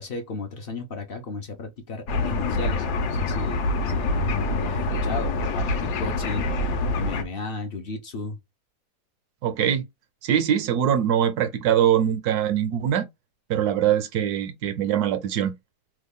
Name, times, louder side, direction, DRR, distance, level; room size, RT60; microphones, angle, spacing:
voice 1, 0.0-8.4, left 3 dB, 55° left, 0.6 m, -35 dB
sound 1, 2.1-7.2, left 2 dB, 70° left, 1.2 m, -25 dB
voice 2, 9.4-9.9 10.2-13.1 13.5-15.5, right 10 dB, 70° right, 1.1 m, -22 dB
3.1 x 2.3 x 3.5 m
omnidirectional pair, 1.9 m